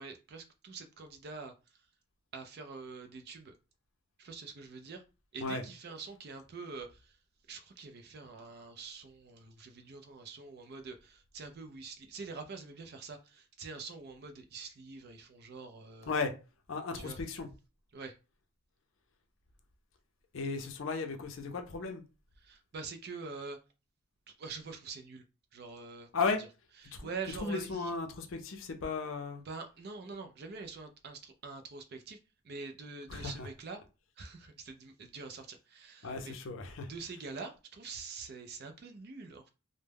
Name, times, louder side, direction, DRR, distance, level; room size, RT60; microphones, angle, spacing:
voice 1, 0.0-1.5 2.3-3.5 4.2-5.0 5.3-7.2 7.5-16.1 17.0-17.2 17.9-18.2 22.4-23.6 24.3-25.2 25.5-26.5 26.8-27.9 29.4-32.2 32.4-33.8 34.2-36.4 36.9-39.5, right 4 dB, 50° right, 0.4 m, -45 dB
voice 2, 16.7-17.5 20.3-22.0 26.1-26.4 26.9-27.1 27.4-29.4 33.1-33.5 36.0-36.9, left 4 dB, 65° left, 0.5 m, -35 dB
2.2 x 2.0 x 3.3 m
head